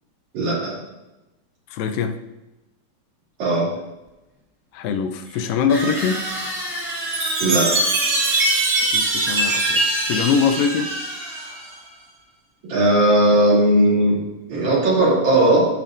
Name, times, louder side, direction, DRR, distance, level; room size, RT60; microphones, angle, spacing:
voice 1, 0.3-0.7 3.4-3.7 7.4-7.7 9.2-9.4 12.7-14.2 14.5-15.7, right 1 dB, 60° right, -7 dB, 4.0 m, -17 dB
voice 2, 1.7-2.2 4.7-6.2 8.9-10.9, left 6 dB, 85° left, 7 dB, 2.4 m, -22 dB
sound 1, 4.1-4.2 5.7-11.8, right 1 dB, 5° left, 1.8 m, -31 dB
Chime, 7.1-11.7, right 2 dB, 40° right, 1.9 m, -22 dB
14.0 x 6.0 x 2.6 m, 0.99 s
omnidirectional pair, 3.9 m